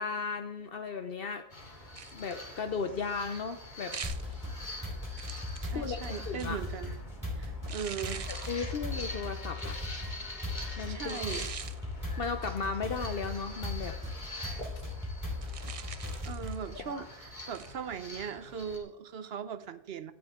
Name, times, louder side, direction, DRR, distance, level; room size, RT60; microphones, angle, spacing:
voice 1, 0.0-1.8 2.1-3.9 4.2-4.5 5.7-6.6 8.4-9.8 10.8-11.4 12.2-14.0 16.8-17.0, left 5 dB, 60° left, 7 dB, 0.9 m, -36 dB
sound 1, 1.5-18.8, left 1 dB, 45° left, 2.6 m, -45 dB
sound 2, 2.0-2.4 3.9-4.3 5.2-6.7 7.7-8.6 9.6-9.8 11.1-11.8 15.4-16.7 17.5-17.8, right 6 dB, 40° right, 0.5 m, -43 dB
sound 3, 4.0-16.7, left 2 dB, 15° right, 4.5 m, -38 dB
voice 2, 5.6-6.9 7.3-8.3 10.9-11.5 16.2-20.1, right 7 dB, 65° right, 13 dB, 1.0 m, -39 dB
17.5 x 12.5 x 3.6 m, 0.82 s
omnidirectional pair, 1.1 m